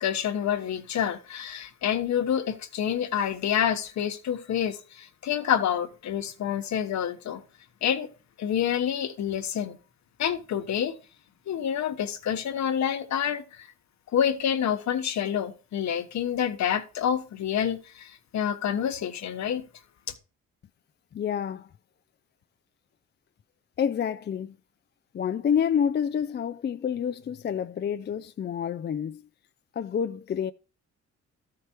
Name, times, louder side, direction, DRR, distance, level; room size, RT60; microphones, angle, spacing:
voice 1, 0.0-7.4 7.8-8.1 8.4-9.8 10.2-10.9 11.5-13.7 14.1-19.7, left 9 dB, 65° left, 1.2 m, -28 dB
voice 2, 21.1-21.7 23.8-24.5 25.1-29.2 29.8-30.5, left 8 dB, 35° left, 0.4 m, -28 dB
13.0 x 4.7 x 4.4 m
cardioid pair, 90°, 30 cm